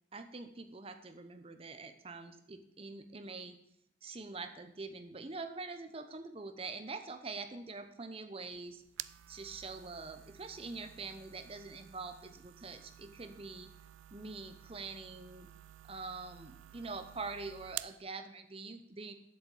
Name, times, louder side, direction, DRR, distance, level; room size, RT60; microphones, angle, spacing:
voice 1, 0.1-3.6 4.0-8.8 9.3-13.7 14.1-15.5 15.9-19.1, right 3 dB, 30° right, 8 dB, 0.8 m, -45 dB
sound 1, 8.4-18.0, right 14 dB, 85° right, 0.3 m, -51 dB
8.1 x 7.4 x 8.2 m, 0.74 s
head